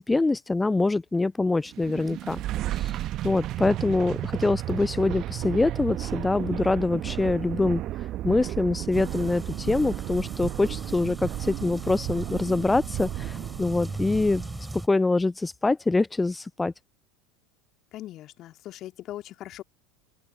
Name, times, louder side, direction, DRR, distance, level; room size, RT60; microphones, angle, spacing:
voice 1, 0.0-2.4 2.7-2.9 3.2-7.8 8.2-14.4 14.7-16.7, left 3 dB, 10° left, 0.4 m, -25 dB
sound 1, 1.7-14.8, right 14 dB, 45° right, 1.0 m, -33 dB
sound 2, 8.9-14.9, right 1 dB, 5° right, 2.9 m, -40 dB
voice 2, 17.9-19.6, left 14 dB, 45° left, 2.3 m, -40 dB
open air
figure-of-eight pair, 75°, 0 cm